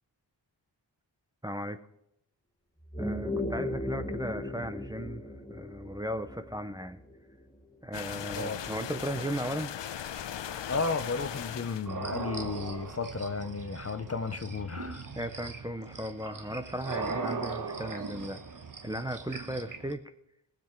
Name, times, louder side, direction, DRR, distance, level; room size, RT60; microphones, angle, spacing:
voice 1, 1.4-1.8 3.0-7.0 7.8-9.7 15.2-18.4 18.8-20.1, equal, 10° right, 0.6 m, -36 dB
sound 1, 2.8-7.6, left 1 dB, 10° left, 1.4 m, -37 dB
sound 2, 7.9-11.9, left 9 dB, 70° left, 0.6 m, -38 dB
voice 2, 10.7-15.1, left 4 dB, 35° left, 0.6 m, -33 dB
sound 3, 11.8-19.9, right 4 dB, 45° right, 1.1 m, -39 dB
19.5 x 7.8 x 4.5 m
wide cardioid pair, 90°, 45 cm